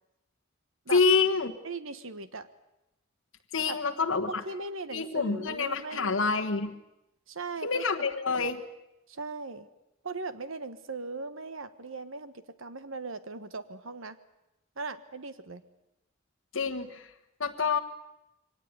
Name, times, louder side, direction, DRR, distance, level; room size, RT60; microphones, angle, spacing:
voice 1, 0.9-1.6 3.5-4.4 4.9-6.8 7.6-8.6 16.5-17.1 17.4-17.8, left 4 dB, 75° left, 4 dB, 1.4 m, -27 dB
voice 2, 1.6-2.5 3.7-3.8 4.3-6.2 7.3-8.0 9.1-9.7 10.0-14.2 14.8-15.6, right 3 dB, 80° right, 12 dB, 1.4 m, -39 dB
23.0 x 18.5 x 9.6 m, 0.90 s
head